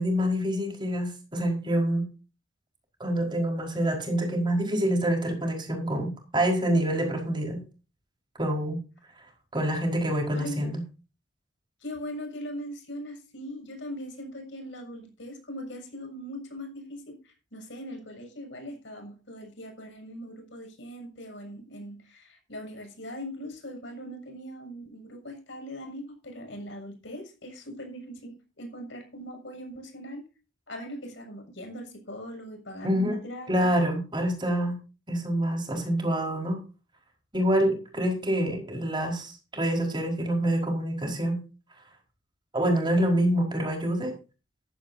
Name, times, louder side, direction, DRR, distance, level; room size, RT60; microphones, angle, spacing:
voice 1, 0.0-2.1 3.0-7.6 8.4-8.8 9.5-10.8 32.8-33.2 33.5-34.8 35.1-36.6 37.3-41.4 42.5-44.1, right 1 dB, 25° right, 2 dB, 4.8 m, -26 dB
voice 2, 10.3-10.7 11.8-30.2 30.7-33.8, equal, 65° left, 3 dB, 6.8 m, -40 dB
15.5 x 13.0 x 2.8 m, 0.32 s
head